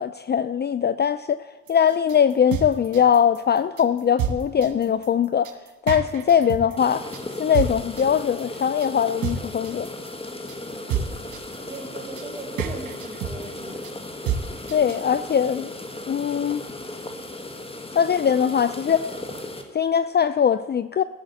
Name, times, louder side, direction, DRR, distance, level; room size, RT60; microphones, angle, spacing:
voice 1, 0.0-5.5 5.9-7.1 7.4-9.9 14.7-15.7 16.1-16.6 17.9-19.0 19.7-21.0, left 8 dB, 35° left, 0.5 m, -21 dB
sound 1, 1.7-15.1, right 7 dB, 85° right, 1.5 m, -30 dB
sound 2, 6.8-19.6, left 2 dB, 20° left, 1.9 m, -36 dB
voice 2, 10.3-11.1 11.7-13.9, right 3 dB, 20° right, 2.6 m, -40 dB
16.0 x 7.4 x 8.3 m
cardioid pair, 90°, 30 cm